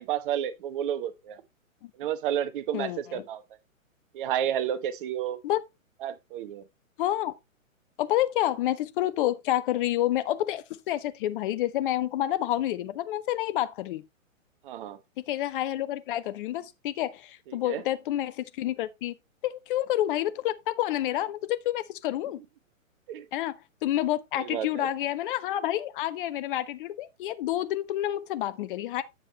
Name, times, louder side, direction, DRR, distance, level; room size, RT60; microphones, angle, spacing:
voice 1, 0.0-1.4 1.9-3.4 4.1-5.4 6.0-6.6 14.6-15.0 17.5-17.8 23.1-23.3 24.4-24.9, right 10 dB, 40° right, 1.2 m, -31 dB
voice 2, 2.7-3.2 5.4-5.6 7.0-7.3 8.0-14.0 15.3-19.1 19.4-22.4 23.3-29.0, left 13 dB, 40° left, 1.1 m, -29 dB
9.8 x 7.5 x 2.9 m
hypercardioid pair, 135°, 41 cm